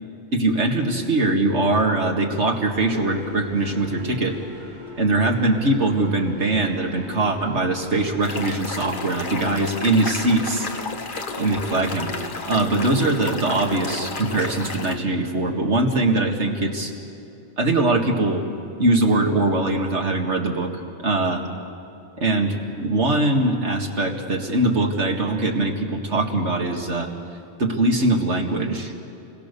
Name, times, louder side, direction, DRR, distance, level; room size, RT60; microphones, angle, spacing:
voice 1, 0.3-4.3 5.0-10.7 11.4-12.1 12.4-16.9 17.6-18.4 18.8-20.7 21.0-21.4 22.2-27.1 27.6-28.9, right 2 dB, 60° right, 1 dB, 2.4 m, -22 dB
sound 1, 2.4-15.0, left 1 dB, 25° right, 2.9 m, -40 dB
sound 2, 8.2-15.0, left 4 dB, 45° left, 1.3 m, -32 dB
28.0 x 22.0 x 6.9 m, 2.8 s
omnidirectional pair, 1.3 m